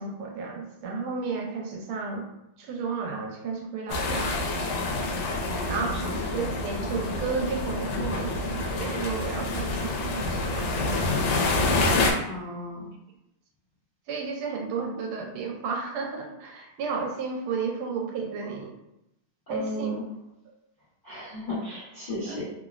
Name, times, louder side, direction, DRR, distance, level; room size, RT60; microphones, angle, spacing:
voice 1, 0.0-2.2 2.6-4.5 5.7-6.0 6.3-11.1 14.1-18.7 19.5-19.9 22.1-22.4, right 5 dB, 85° right, 1 dB, 1.4 m, -33 dB
sound 1, 3.9-12.1, left 2 dB, 80° left, 1.4 m, -27 dB
voice 2, 5.5-6.1 12.2-12.9 19.5-20.0 21.0-22.4, left 1 dB, 55° left, -11 dB, 0.5 m, -35 dB
3.5 x 2.0 x 2.3 m, 0.85 s
omnidirectional pair, 2.3 m